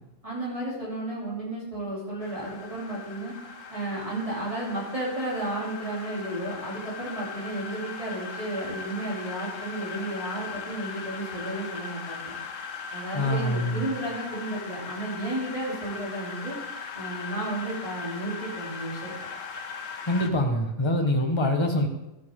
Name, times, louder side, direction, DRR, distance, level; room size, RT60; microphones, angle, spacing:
voice 1, 0.2-3.3 3.7-12.3 12.9-16.6 16.9-19.1, right 1 dB, 25° right, -7 dB, 3.3 m, -33 dB
sound 1, 2.2-20.3, left 5 dB, 85° left, 1.4 m, -39 dB
voice 2, 13.1-13.8 20.1-21.9, left 1 dB, 25° left, 3 dB, 1.3 m, -24 dB
14.5 x 10.5 x 3.7 m, 0.92 s
omnidirectional pair, 1.3 m